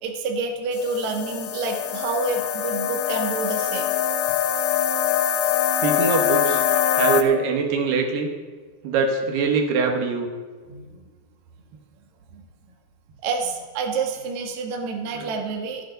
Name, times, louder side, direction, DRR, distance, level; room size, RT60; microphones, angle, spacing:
voice 1, 0.0-3.9 10.7-10.9 12.3-12.4 13.2-15.8, right 3 dB, 55° right, 2 dB, 2.4 m, -28 dB
sound 1, 0.7-7.2, left 9 dB, 90° left, 1.8 m, -23 dB
voice 2, 5.8-6.6 7.0-8.3 8.8-10.3 15.1-15.3, right 4 dB, 75° right, 4 dB, 3.3 m, -23 dB
27.0 x 9.3 x 4.0 m, 1.5 s
omnidirectional pair, 4.8 m